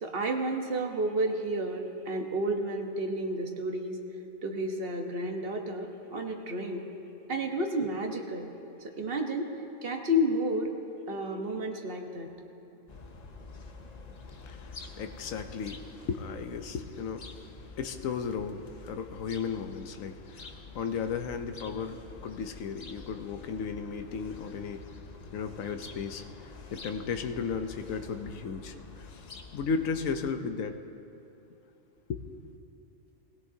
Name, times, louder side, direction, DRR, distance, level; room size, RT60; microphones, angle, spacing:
voice 1, 0.0-4.0 4.4-6.8 7.3-8.5 8.8-9.5 9.8-10.7 11.1-12.3, equal, 50° right, 3 dB, 1.3 m, -31 dB
sound 1, 12.9-30.3, left 3 dB, 40° left, 0.7 m, -48 dB
voice 2, 14.3-25.0 25.3-30.8 32.1-32.2, left 5 dB, 85° left, 7 dB, 1.1 m, -35 dB
19.5 x 17.5 x 2.7 m, 2.9 s
omnidirectional pair, 1.3 m